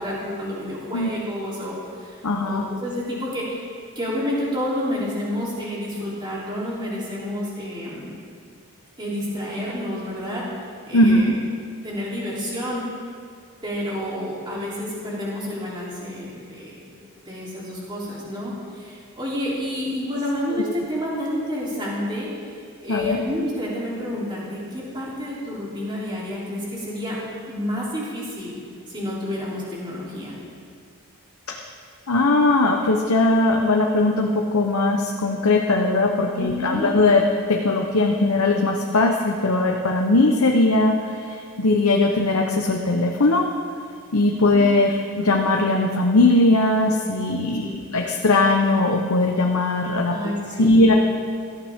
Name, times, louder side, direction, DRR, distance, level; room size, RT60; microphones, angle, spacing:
voice 1, 0.0-2.2 2.4-3.6 3.9-8.1 9.0-10.4 10.8-11.3 11.8-12.8 13.6-16.9 17.2-27.2 27.5-28.6 28.9-30.4 36.3-36.9 44.3-44.7 47.6-47.8 50.1-50.8, left 1 dB, 20° right, -7 dB, 3.3 m, -29 dB
voice 2, 2.2-2.6 10.9-11.4 20.5-20.7 22.9-23.2 31.5-31.6 32.1-43.5 44.1-50.2 50.6-50.9, left 2 dB, 80° left, 1 dB, 1.0 m, -19 dB
17.0 x 14.0 x 3.7 m, 2.3 s
head